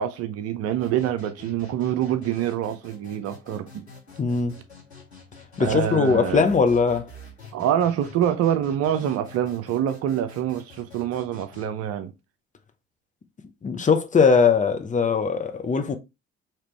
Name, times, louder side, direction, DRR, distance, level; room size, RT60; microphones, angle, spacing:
voice 1, 0.0-3.9 5.6-6.5 7.5-12.1, right 10 dB, 50° right, 0.6 m, -26 dB
sound 1, 0.8-11.7, left 1 dB, 90° left, 1.3 m, -47 dB
voice 2, 4.2-4.6 5.6-7.1 13.6-16.0, left 5 dB, 25° left, 0.8 m, -20 dB
5.1 x 3.0 x 3.1 m
figure-of-eight pair, 50°, 32 cm